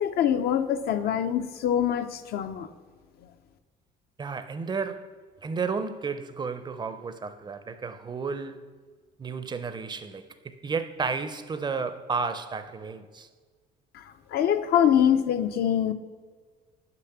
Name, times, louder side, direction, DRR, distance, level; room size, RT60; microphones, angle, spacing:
voice 1, 0.0-2.7 13.9-15.9, left 9 dB, 65° left, 0.5 m, -24 dB
voice 2, 4.2-5.1 5.4-8.6 9.2-13.3, right 5 dB, 25° right, 0.5 m, -32 dB
6.7 x 5.9 x 5.8 m
cardioid pair, 110°, 17 cm